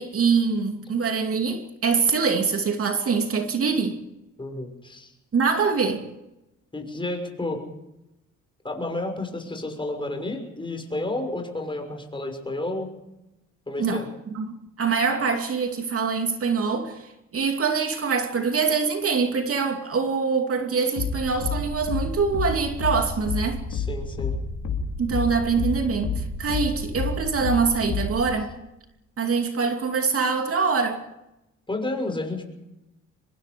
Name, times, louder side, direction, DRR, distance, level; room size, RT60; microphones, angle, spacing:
voice 1, 0.0-4.0 5.3-6.1 13.8-23.6 25.0-28.5 29.2-31.0, right 5 dB, 50° right, 2.7 m, -24 dB
voice 2, 4.4-5.1 6.7-7.6 8.6-12.9 13.7-14.1 23.7-24.3 31.7-32.4, left 2 dB, 15° left, 6.2 m, -31 dB
sound 1, 21.0-28.3, left 4 dB, 70° left, 3.8 m, -29 dB
25.0 x 22.0 x 5.3 m
cardioid pair, 90°, 30 cm